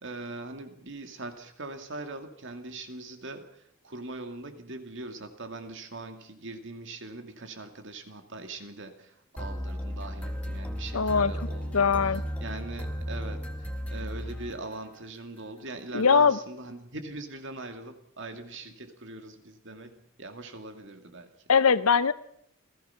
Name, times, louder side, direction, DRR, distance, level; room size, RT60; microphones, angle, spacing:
voice 1, 0.0-21.3, right 2 dB, 55° right, 6 dB, 2.4 m, -41 dB
sound 1, 9.4-15.0, equal, 5° left, 1.8 m, -35 dB
voice 2, 10.9-11.3 11.7-12.2 15.9-16.4 21.5-22.1, left 5 dB, 80° left, 15 dB, 0.9 m, -21 dB
28.0 x 16.5 x 5.8 m, 0.70 s
head